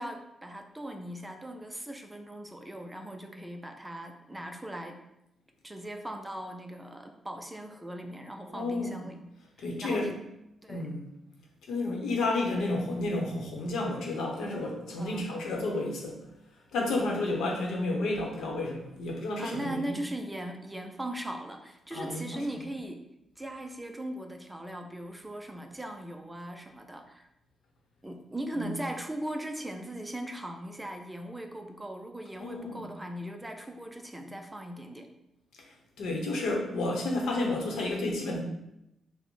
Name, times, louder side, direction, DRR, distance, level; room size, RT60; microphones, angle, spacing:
voice 1, 0.0-5.0 5.6-9.2 9.8-10.2 10.6-10.9 15.0-15.3 19.4-23.0 23.4-27.3 28.0-35.1, right 1 dB, 10° right, 5 dB, 0.4 m, -39 dB
voice 2, 8.5-9.1 9.6-10.1 10.7-11.1 11.7-16.2 16.7-20.0 21.9-22.4 28.6-28.7 32.4-32.9 36.0-38.4, left 2 dB, 85° left, 1 dB, 0.8 m, -31 dB
4.0 x 2.1 x 4.5 m, 0.85 s
cardioid pair, 125°, 0 cm